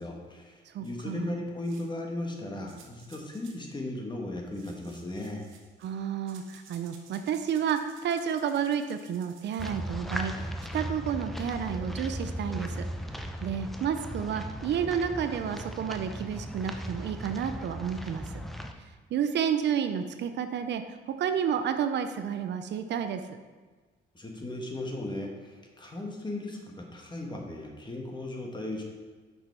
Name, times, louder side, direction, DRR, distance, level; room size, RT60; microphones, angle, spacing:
voice 1, 0.0-5.4 24.1-26.6 26.9-28.8, left 1 dB, 20° left, 0 dB, 1.4 m, -36 dB
voice 2, 0.7-1.4 5.8-12.9 13.4-18.4 19.1-23.4, right 8 dB, 65° right, 8 dB, 0.5 m, -31 dB
sound 1, 0.8-0.9 1.6-2.0 2.7-3.6 4.5-6.0 6.3-9.7, right 6 dB, 85° right, 0.9 m, -56 dB
sound 2, 9.6-18.7, equal, ahead, 0.5 m, -37 dB
5.9 x 5.4 x 4.4 m, 1.4 s
cardioid pair, 90°, 20 cm